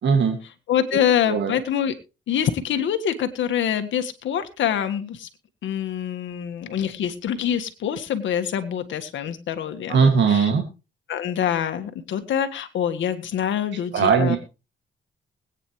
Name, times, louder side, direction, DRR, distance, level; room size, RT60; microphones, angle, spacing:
voice 1, 0.0-0.4 1.3-1.6 9.9-10.6 13.9-14.4, right 5 dB, 65° right, 3 dB, 2.2 m, -19 dB
voice 2, 0.7-1.9 2.3-5.3 5.6-10.5 11.1-14.4, left 9 dB, 70° left, 8 dB, 1.7 m, -25 dB
21.0 x 9.3 x 3.2 m, 0.30 s
cardioid pair, 90°, 20 cm